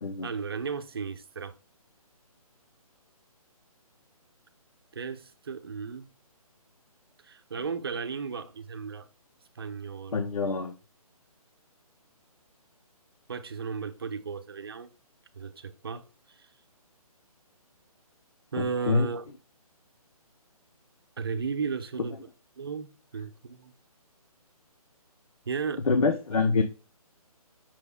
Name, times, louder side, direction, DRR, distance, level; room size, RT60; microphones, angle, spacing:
voice 1, 0.2-1.5 4.9-6.1 7.2-9.1 9.5-10.3 13.3-14.9 15.4-16.5 18.5-19.2 21.2-22.2 22.6-23.7 25.5-25.9, right 5 dB, 40° right, 0.9 m, -35 dB
voice 2, 10.1-10.7 18.6-19.1 25.9-26.6, left 4 dB, 70° left, 1.0 m, -25 dB
6.6 x 6.0 x 3.7 m
hypercardioid pair, 175°, 19 cm